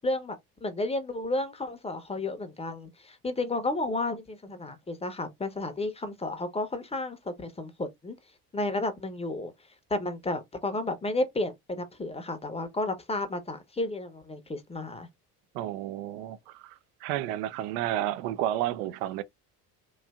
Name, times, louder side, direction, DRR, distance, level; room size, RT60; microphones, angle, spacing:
voice 1, 0.0-8.2 8.5-9.5 9.9-15.1, left 2 dB, 15° left, 0.7 m, -32 dB
voice 2, 15.5-16.7 17.0-19.2, right 13 dB, 70° right, 0.5 m, -31 dB
3.2 x 2.5 x 2.3 m
hypercardioid pair, 60°, 49 cm